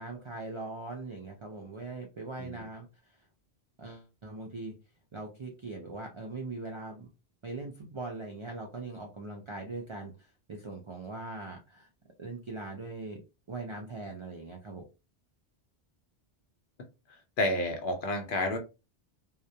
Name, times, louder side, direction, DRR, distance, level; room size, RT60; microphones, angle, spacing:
voice 1, 0.0-3.2 3.8-4.7 5.1-7.1 7.4-11.9 12.2-13.2 13.5-14.8, right 3 dB, 55° right, 0.3 m, -41 dB
voice 2, 17.4-18.6, left 1 dB, 60° left, 0.7 m, -30 dB
2.3 x 2.1 x 2.7 m
omnidirectional pair, 1.1 m